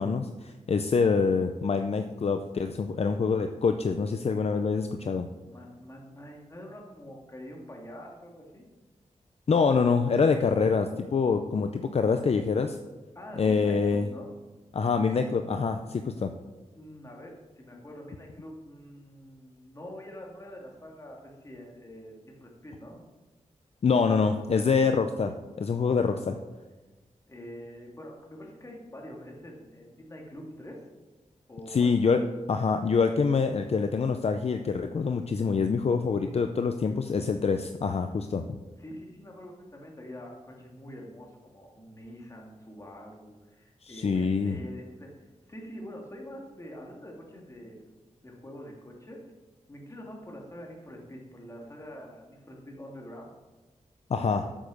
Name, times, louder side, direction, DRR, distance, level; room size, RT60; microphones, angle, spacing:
voice 1, 0.0-5.3 9.5-12.8 13.3-14.1 14.7-16.3 23.8-25.3 25.6-26.4 31.7-32.2 32.5-38.4 43.8-44.6 54.1-54.5, left 5 dB, 55° left, 7 dB, 0.6 m, -25 dB
voice 2, 5.4-8.6 13.1-14.3 16.7-23.0 27.3-30.8 31.5-31.9 38.8-47.9 48.2-49.3 49.7-53.3, equal, 25° left, -1 dB, 2.5 m, -45 dB
8.7 x 7.3 x 6.4 m, 1.2 s
wide cardioid pair, 100°, 13 cm